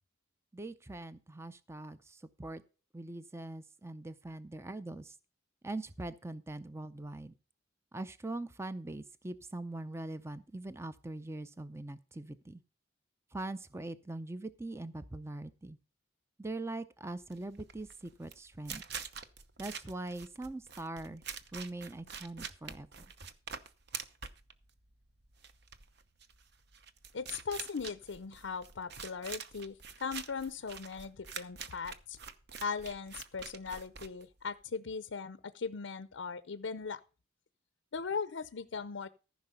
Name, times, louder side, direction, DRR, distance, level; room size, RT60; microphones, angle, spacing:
voice 1, 0.5-2.6 2.9-5.1 5.6-7.3 7.9-12.6 13.3-15.8 16.4-18.8 19.6-21.2 21.5-22.9, right 2 dB, 15° right, 13 dB, 0.5 m, -42 dB
sound 1, 17.2-34.6, right 6 dB, 55° right, 0.9 m, -46 dB
voice 2, 27.1-32.2 32.6-37.0 37.9-39.1, left 5 dB, 65° left, 13 dB, 0.6 m, -39 dB
14.5 x 5.8 x 5.5 m, 0.35 s
head